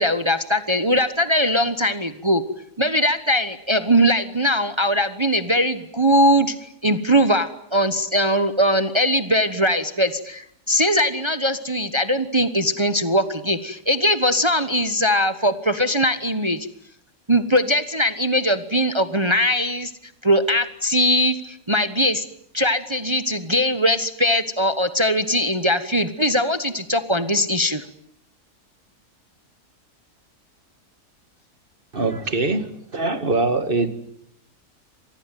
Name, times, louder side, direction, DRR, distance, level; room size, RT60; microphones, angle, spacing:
voice 1, 0.0-2.4 2.8-16.7 17.3-19.9 20.2-22.2 22.5-27.8, equal, 20° right, 11 dB, 1.1 m, -20 dB
voice 2, 31.9-33.9, right 3 dB, 35° right, 10 dB, 2.1 m, -23 dB
26.5 x 19.5 x 9.3 m, 0.70 s
omnidirectional pair, 1.7 m